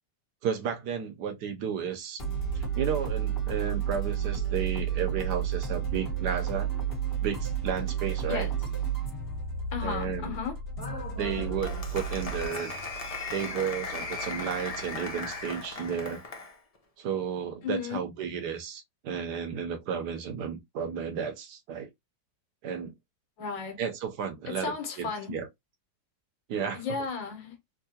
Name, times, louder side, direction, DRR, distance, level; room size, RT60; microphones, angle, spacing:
voice 1, 0.4-2.2 2.5-6.7 7.2-8.5 9.8-10.4 11.1-12.7 13.3-16.2 17.0-21.9 22.6-22.9 23.8-25.5 26.5-27.0, right 7 dB, 70° right, 1.2 m, -33 dB
sound 1, 2.2-15.6, right 7 dB, 35° left, 1.4 m, -32 dB
voice 2, 9.7-10.6 17.6-18.0 23.4-23.8 24.5-25.3 26.7-27.6, left 5 dB, 90° left, 1.8 m, -34 dB
Applause, 10.8-16.6, left 3 dB, 50° left, 0.4 m, -38 dB
3.7 x 2.8 x 2.8 m
omnidirectional pair, 2.0 m